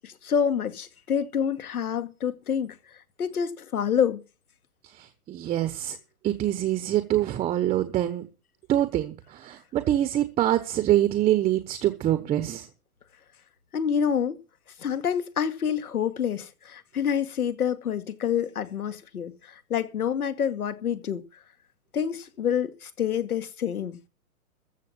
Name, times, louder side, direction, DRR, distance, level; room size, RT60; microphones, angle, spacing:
voice 1, 0.0-2.8 3.2-4.2 13.7-14.4 14.8-21.2 21.9-24.0, left 8 dB, 75° left, 2.1 m, -27 dB
voice 2, 5.0-6.0 6.2-8.3 8.7-12.7, right 13 dB, 15° right, 1.1 m, -25 dB
14.0 x 7.5 x 7.2 m
hypercardioid pair, 145°, 45 cm